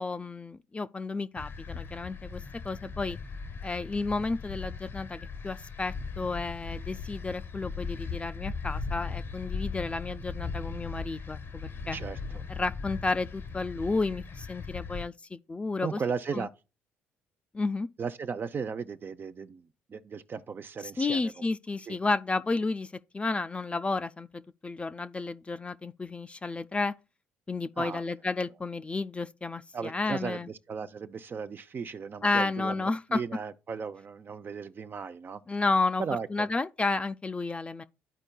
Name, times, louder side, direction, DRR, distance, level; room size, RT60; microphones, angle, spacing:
voice 1, 0.0-3.2 3.6-12.0 12.5-16.0 16.3-16.5 17.5-17.9 21.0-26.9 27.5-30.5 32.2-33.2 35.5-36.0 36.3-37.8, left 3 dB, 20° left, 0.4 m, -32 dB
sound 1, 1.4-15.0, left 5 dB, 50° left, 0.8 m, -38 dB
voice 2, 11.9-12.4 15.8-16.5 18.0-21.4 21.9-22.0 27.8-28.0 29.7-35.4 36.0-36.5, right 5 dB, 40° right, 0.6 m, -36 dB
12.5 x 4.4 x 2.2 m
supercardioid pair, 65°, 5 cm